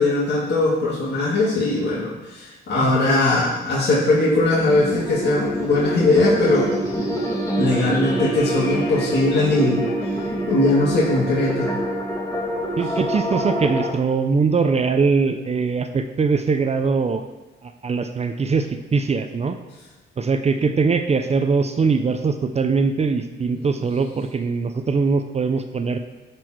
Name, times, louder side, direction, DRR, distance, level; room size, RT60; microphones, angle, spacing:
voice 1, 0.0-6.7 7.6-9.8 10.5-11.7, left 2 dB, 60° left, -6 dB, 2.6 m, -20 dB
sound 1, 4.3-13.9, right 1 dB, 15° left, 2.2 m, -26 dB
voice 2, 12.8-17.2 17.6-19.6 20.2-26.0, right 4 dB, 35° right, 8 dB, 0.6 m, -21 dB
11.5 x 4.6 x 4.6 m, 1.1 s
cardioid pair, 90°, 20 cm